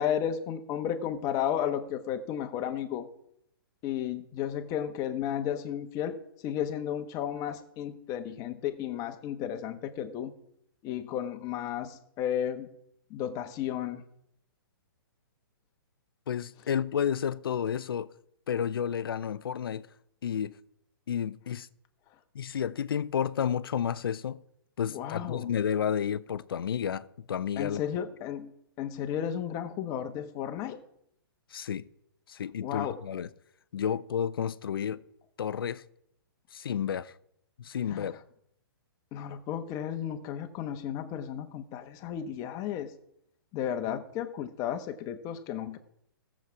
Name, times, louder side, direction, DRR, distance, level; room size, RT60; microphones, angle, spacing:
voice 1, 0.0-3.1 3.8-10.3 10.8-12.7 13.1-14.0 24.9-25.5 27.6-28.5 28.8-30.8 32.6-33.0 37.9-38.1 39.1-42.9 43.5-45.8, left 9 dB, 30° left, 1.1 m, -33 dB
voice 2, 16.3-18.1 18.5-19.9 20.2-20.6 21.1-21.7 22.3-24.4 24.8-27.8 31.5-31.9 32.3-33.3 33.7-35.0 35.4-35.8 36.5-37.1 37.6-38.2, left 8 dB, 75° left, 0.6 m, -31 dB
16.0 x 7.4 x 4.8 m
hypercardioid pair, 135°, 12 cm